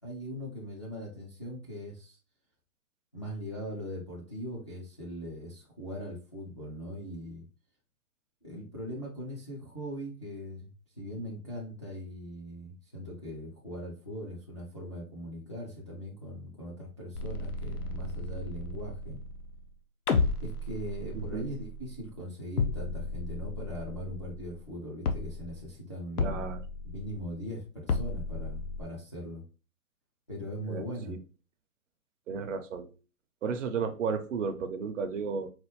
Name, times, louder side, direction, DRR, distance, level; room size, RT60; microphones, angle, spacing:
voice 1, 0.0-2.2 3.1-7.4 8.4-19.2 20.4-26.4 26.9-29.4 30.3-31.2, equal, 20° left, -4 dB, 0.3 m, -40 dB
sound 1, 17.1-19.7 20.1-22.2 22.6-24.8 25.1-25.7 26.2-27.4 27.9-28.8, left 3 dB, 75° left, 0.8 m, -34 dB
voice 2, 26.2-26.6 30.7-31.2 32.3-32.9 33.4-35.5, right 5 dB, 55° right, 8 dB, 0.7 m, -33 dB
4.1 x 2.2 x 3.0 m, 0.34 s
hypercardioid pair, 140°, 45 cm